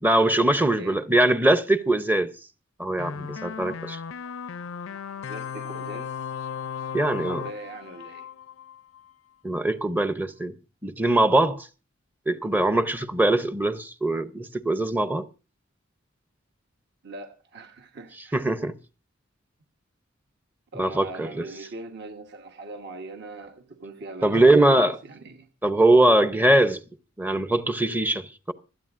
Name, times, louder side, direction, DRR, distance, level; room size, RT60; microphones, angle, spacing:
voice 1, 0.0-2.3 2.8-4.0 6.9-7.4 9.4-10.5 10.8-11.7 12.3-15.3 18.3-18.7 20.8-21.3 24.2-25.0 25.6-26.8 27.2-28.5, right 1 dB, 10° right, 0.6 m, -21 dB
sound 1, 3.0-9.1, left 7 dB, 75° left, 0.5 m, -36 dB
voice 2, 5.3-6.2 7.3-8.3 17.0-18.5 20.7-25.5, right 2 dB, 55° right, 1.2 m, -41 dB
26.0 x 8.9 x 2.5 m
head